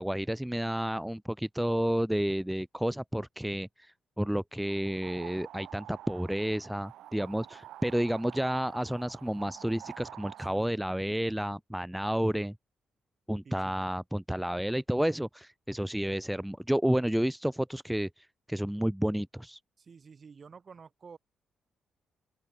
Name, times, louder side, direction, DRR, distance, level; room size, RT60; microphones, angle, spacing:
voice 1, 0.0-12.5 13.3-19.6, equal, 5° right, 0.7 m, -31 dB
sound 1, 4.6-10.6, right 13 dB, 80° right, 6.7 m, -48 dB
voice 2, 10.4-10.8 13.5-13.8 19.8-21.2, right 5 dB, 40° right, 5.2 m, -51 dB
open air
cardioid pair, 90°, 0 cm